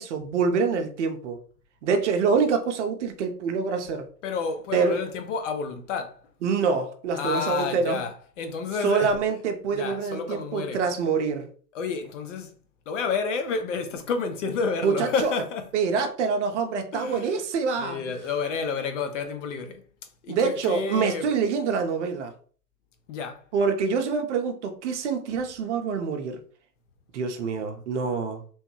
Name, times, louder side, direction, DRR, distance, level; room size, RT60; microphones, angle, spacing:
voice 1, 0.0-1.4 1.8-4.1 4.7-5.0 6.4-8.0 8.8-11.5 14.8-15.3 15.7-18.0 20.3-22.3 23.5-26.4 27.1-28.4, right 5 dB, 50° right, 0.6 m, -26 dB
voice 2, 4.2-6.2 7.2-9.2 9.7-10.8 11.7-12.5 12.9-15.7 16.9-17.4 17.8-19.8 20.2-21.3 23.1-23.4, left 5 dB, 50° left, 0.6 m, -30 dB
3.1 x 2.1 x 3.0 m
hypercardioid pair, 115°, 48 cm